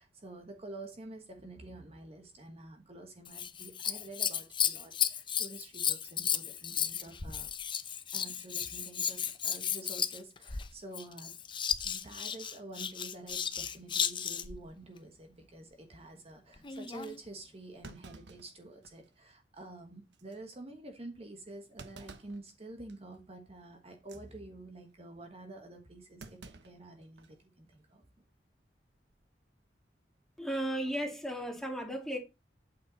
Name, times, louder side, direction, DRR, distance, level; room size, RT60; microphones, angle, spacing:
voice 1, 0.0-7.5 8.1-11.3 11.8-28.1, right 2 dB, 35° right, 1.3 m, -48 dB
Scissors, 3.2-14.6 16.6-17.2 17.9-18.0, left 8 dB, 30° left, 0.7 m, -34 dB
Thump thud, 16.3-16.4 16.9-17.0 17.8-19.2 19.6-19.7 20.1-20.4 21.8-22.4 22.9-23.2 23.9-24.2 26.2-27.4 27.7-27.8 29.0-29.3, right 3 dB, 90° right, 1.0 m, -52 dB
voice 2, 30.4-32.2, right 1 dB, 5° left, 2.2 m, -35 dB
8.5 x 6.7 x 4.0 m
head